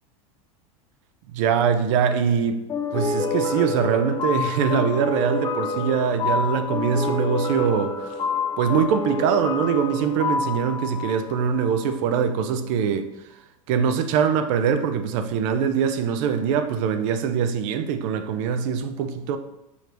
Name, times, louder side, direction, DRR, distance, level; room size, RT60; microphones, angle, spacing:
voice 1, 1.3-2.6 2.9-8.1 8.6-13.1 13.7-19.4, right 7 dB, 60° right, 0.5 m, -23 dB
sound 1, 2.7-12.0, left 4 dB, 20° left, 0.4 m, -28 dB
5.0 x 3.2 x 2.5 m
hypercardioid pair, 105°, 18 cm